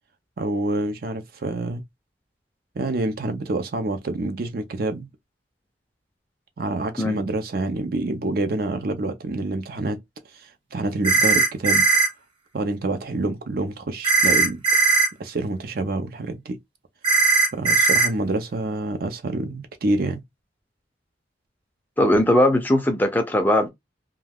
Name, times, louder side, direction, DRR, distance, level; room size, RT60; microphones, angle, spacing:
voice 1, 0.4-1.8 2.8-5.1 6.6-10.0 10.3-11.8 12.5-14.9 15.2-16.6 17.5-20.2, right 2 dB, 55° right, 0.5 m, -27 dB
sound 1, 11.0-12.1 14.0-15.1 17.0-18.1, right 3 dB, 25° right, 0.9 m, -18 dB
voice 2, 22.0-23.7, left 1 dB, 10° left, 0.5 m, -19 dB
2.3 x 2.2 x 3.4 m
head